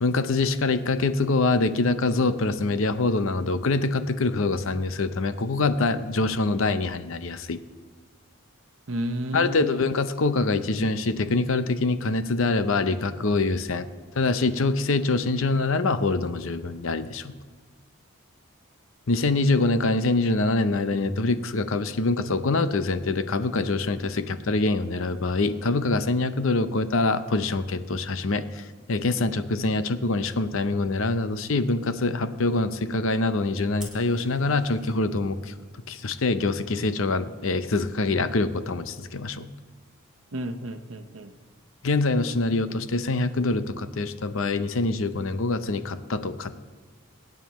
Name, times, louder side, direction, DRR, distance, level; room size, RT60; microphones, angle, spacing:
voice 1, 0.0-7.6 9.3-13.9 14.2-17.3 19.1-28.4 28.9-35.4 35.9-39.5 41.8-46.6, left 3 dB, 70° left, 11 dB, 0.7 m, -25 dB
voice 2, 8.9-10.0 40.3-41.3, right 1 dB, 70° right, 8 dB, 0.9 m, -32 dB
Fire, 33.8-34.9, right 1 dB, 5° right, 2.7 m, -46 dB
23.5 x 9.3 x 3.1 m, 1.4 s
head